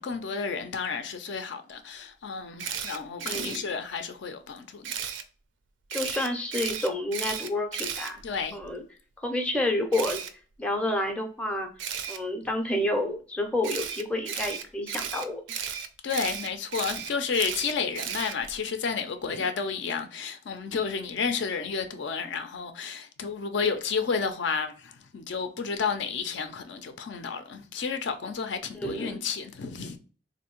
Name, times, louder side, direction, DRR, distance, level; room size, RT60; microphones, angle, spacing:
voice 1, 0.0-4.9 8.2-8.6 16.0-30.0, left 5 dB, 60° left, 0.4 m, -31 dB
Camera, 2.6-3.6 4.8-5.2 5.9-8.7 9.9-10.3 11.8-12.2 13.6-18.6, right 8 dB, 70° right, 0.4 m, -34 dB
voice 2, 3.2-3.7 5.9-8.2 8.5-8.8 9.2-10.2 10.6-11.7 12.1-15.4 19.3-19.5 28.7-29.3, left 1 dB, 5° left, 0.5 m, -29 dB
3.4 x 2.6 x 2.9 m
head